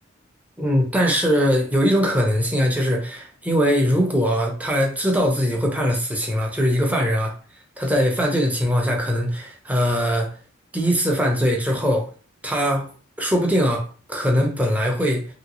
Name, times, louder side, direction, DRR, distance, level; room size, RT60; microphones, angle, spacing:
voice 1, 0.6-7.3 7.8-10.3 10.7-12.1 12.4-12.9 13.2-15.3, equal, 10° right, 0.7 m, -21 dB
3.0 x 2.8 x 3.0 m
head